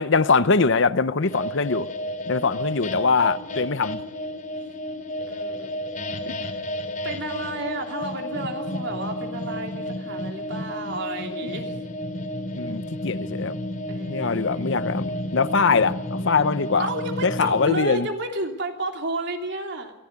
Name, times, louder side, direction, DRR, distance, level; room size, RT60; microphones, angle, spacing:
voice 1, 0.0-1.9 2.3-4.0 6.3-6.4 12.6-13.6 14.1-16.9 17.2-18.1, left 4 dB, 60° left, 0.8 m, -22 dB
sound 1, 1.2-17.7, equal, 40° left, 3.2 m, -32 dB
voice 2, 2.1-3.0 5.3-5.8 7.0-11.8 13.9-14.8 16.2-16.4 16.8-19.9, right 2 dB, 55° right, 3.2 m, -32 dB
23.0 x 16.0 x 9.5 m
head